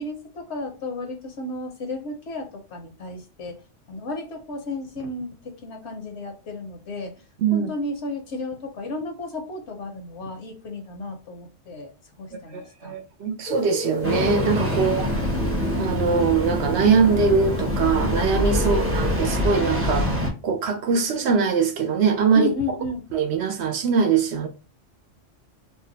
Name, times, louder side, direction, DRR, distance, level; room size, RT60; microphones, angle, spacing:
voice 1, 0.0-3.6 3.9-7.1 7.5-12.9 18.6-19.0 22.3-23.0, left 2 dB, 70° left, 0.9 m, -33 dB
voice 2, 12.5-15.1 15.8-20.1 20.4-22.5 23.1-24.5, right 5 dB, 70° right, 0.8 m, -22 dB
sound 1, 13.5-19.3, left 1 dB, 50° left, 0.6 m, -36 dB
Engine starting, 14.0-20.3, left 1 dB, 15° right, 0.6 m, -25 dB
2.6 x 2.1 x 3.8 m
omnidirectional pair, 1.3 m